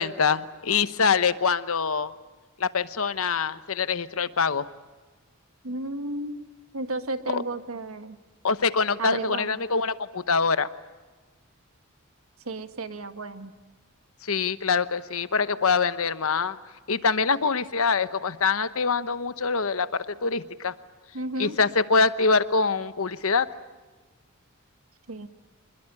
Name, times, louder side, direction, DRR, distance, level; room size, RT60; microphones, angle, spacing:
voice 1, 0.0-2.1 2.6-4.7 7.3-7.4 8.4-10.7 14.2-16.6 16.9-20.7 21.4-23.5, left 5 dB, 75° left, 13 dB, 1.0 m, -24 dB
voice 2, 5.6-6.4 6.7-8.2 9.0-9.5 12.5-13.5 21.1-21.6 25.1-25.3, right 2 dB, 80° right, 9 dB, 1.5 m, -33 dB
26.5 x 21.0 x 9.6 m, 1.3 s
head